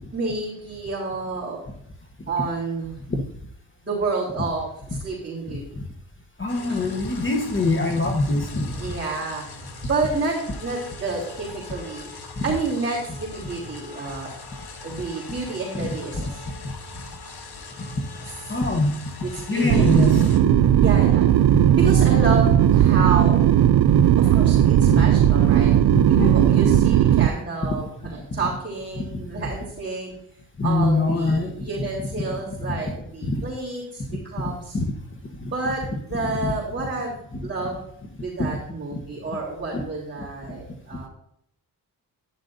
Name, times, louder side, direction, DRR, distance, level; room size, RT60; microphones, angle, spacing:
voice 1, 0.1-1.6 2.3-3.0 3.8-5.6 8.8-9.4 9.9-12.1 12.4-14.3 14.8-16.5 19.2-20.2 20.8-21.3 21.8-23.4 24.2-25.7 26.1-30.1 30.6-34.8 35.5-37.8 38.2-41.1, right 3 dB, 30° right, -7 dB, 3.6 m, -29 dB
voice 2, 6.4-8.8 12.4-12.5 15.7-15.9 16.1-16.2 18.5-19.1 19.5-20.6 23.9-24.1 24.9-25.0 25.9-26.8 27.7-27.8 29.0-29.2 30.6-31.5 32.7-32.8 33.2-33.4 34.1-34.2 34.7-34.9 35.4-35.5 36.4-36.5 38.4-38.6 38.9-39.0 39.7-39.8, left 2 dB, 30° left, 2 dB, 1.2 m, -24 dB
sound 1, 6.5-20.4, left 3 dB, 85° left, 1.7 m, -41 dB
sound 2, 19.7-27.3, right 11 dB, 85° right, 0.5 m, -17 dB
11.5 x 10.5 x 2.7 m, 0.70 s
wide cardioid pair, 115°, 37 cm